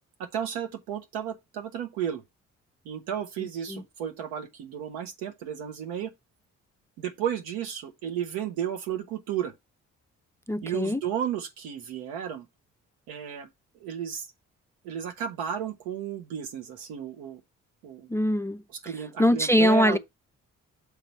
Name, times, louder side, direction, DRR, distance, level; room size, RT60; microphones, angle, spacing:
voice 1, 0.3-2.2 2.8-6.1 7.0-9.5 10.6-12.5 13.1-13.5 13.8-14.3 14.8-17.4 17.8-18.1 18.8-20.0, right 9 dB, 80° right, 1.3 m, -33 dB
voice 2, 10.5-11.0 18.1-18.6 19.2-20.0, equal, 10° left, 0.4 m, -22 dB
6.7 x 4.1 x 4.5 m
hypercardioid pair, 45°, 36 cm